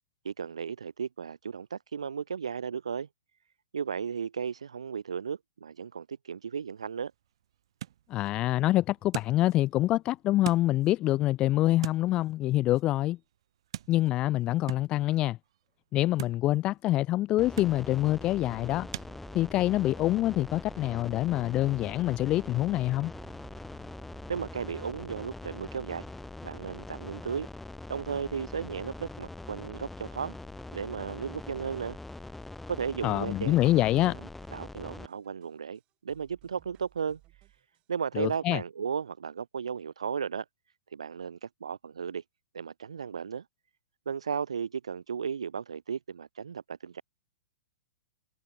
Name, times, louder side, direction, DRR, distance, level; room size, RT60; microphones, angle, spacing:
voice 1, 0.2-3.1 3.7-7.1 24.3-26.1 26.4-27.5 27.9-30.4 30.7-32.0 32.7-34.1 34.5-37.2 37.9-40.4 40.9-42.2 42.5-43.5 44.0-47.0, right 6 dB, 85° right, 4.6 m, -35 dB
sound 1, 6.6-19.1, right 11 dB, 65° right, 2.1 m, -45 dB
voice 2, 8.1-13.2 13.9-15.4 15.9-18.9 19.3-23.1 33.0-34.2 38.1-38.6, left 15 dB, 30° left, 1.3 m, -26 dB
sound 2, 17.4-35.1, left 2 dB, 5° left, 6.9 m, -43 dB
sound 3, 18.1-27.0 27.4-27.5 28.1-32.5 32.7-32.8 33.1-33.2 33.4-35.8 36.1-37.8, right 19 dB, 35° right, 7.1 m, -59 dB
hypercardioid pair, 130°, 3 cm